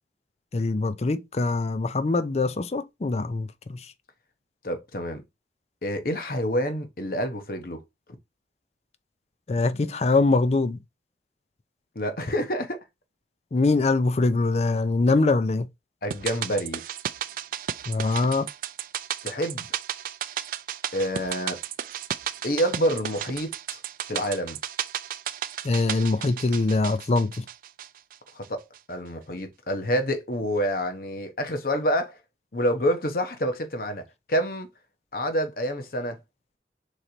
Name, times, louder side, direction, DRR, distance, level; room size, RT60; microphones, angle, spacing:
voice 1, 0.5-3.8 9.5-10.8 13.5-15.7 17.9-18.5 25.6-27.4, left 3 dB, 35° left, 0.4 m, -23 dB
voice 2, 4.6-5.2 5.8-7.8 9.7-10.0 11.9-12.8 16.0-16.8 19.2-19.7 20.9-21.6 22.4-23.8 24.1-24.6 28.3-32.2 32.5-34.7 35.1-36.2, equal, 55° left, 0.9 m, -28 dB
sound 1, 16.1-28.5 28.7-28.8, right 10 dB, 50° right, 0.3 m, -34 dB
3.9 x 3.2 x 4.2 m
head